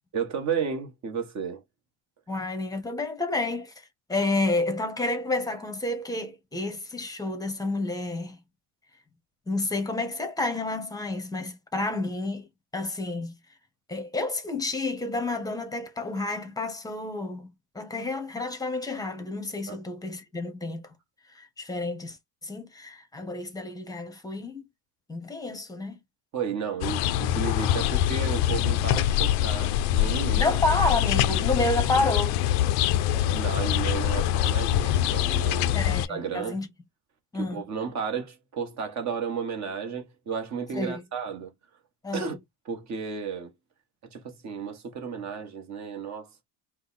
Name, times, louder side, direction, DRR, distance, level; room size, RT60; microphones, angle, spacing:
voice 1, 0.1-1.6 19.7-19.8 26.3-30.5 33.1-35.8 36.1-36.6 37.3-41.5 42.1-42.4 42.6-43.5 44.1-46.4, right 6 dB, 35° right, 1.6 m, -33 dB
voice 2, 2.3-3.7 4.1-8.4 9.5-12.5 12.7-13.3 13.9-17.5 17.7-20.8 21.3-22.2 22.4-24.6 25.1-26.0 30.3-32.4 35.7-36.7 37.3-37.6 40.7-41.0 42.0-42.3, left 2 dB, 10° left, 1.0 m, -30 dB
sound 1, 26.8-36.1, left 12 dB, 55° left, 0.6 m, -24 dB
5.2 x 2.4 x 4.1 m
cardioid pair, 140°, 46 cm